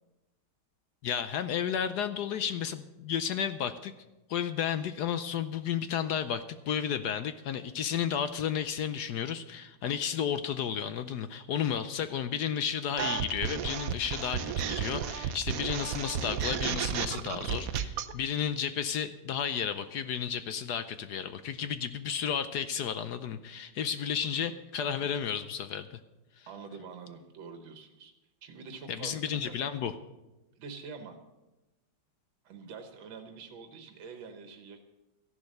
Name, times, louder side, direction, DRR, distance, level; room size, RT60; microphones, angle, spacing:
voice 1, 1.0-3.9 4.3-25.9 26.4-26.5 28.9-29.9, left 8 dB, 70° left, 11 dB, 1.1 m, -32 dB
sound 1, 13.0-18.1, right 8 dB, 65° right, 0.9 m, -33 dB
voice 2, 24.2-24.6 26.5-28.1 28.4-29.5 30.6-31.2 32.4-34.8, right 5 dB, 85° right, 6 dB, 2.0 m, -46 dB
14.0 x 11.0 x 6.5 m, 1.0 s
omnidirectional pair, 2.1 m